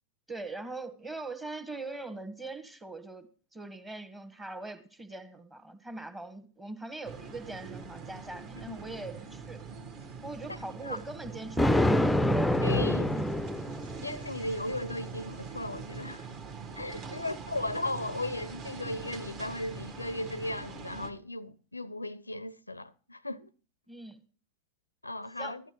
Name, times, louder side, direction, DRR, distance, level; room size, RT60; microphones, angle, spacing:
voice 1, 0.3-9.6 10.2-11.9 17.0-17.2 23.9-24.2 25.4-25.6, right 2 dB, 10° right, 1.2 m, -42 dB
sound 1, 7.0-21.1, right 5 dB, 35° right, 1.3 m, -43 dB
Thunder, 11.6-14.1, left 1 dB, 5° left, 0.5 m, -26 dB
voice 2, 12.6-13.3 14.0-16.3 16.7-23.5 25.0-25.6, left 2 dB, 85° left, 0.4 m, -36 dB
15.0 x 11.5 x 3.0 m
figure-of-eight pair, 90°, 0 cm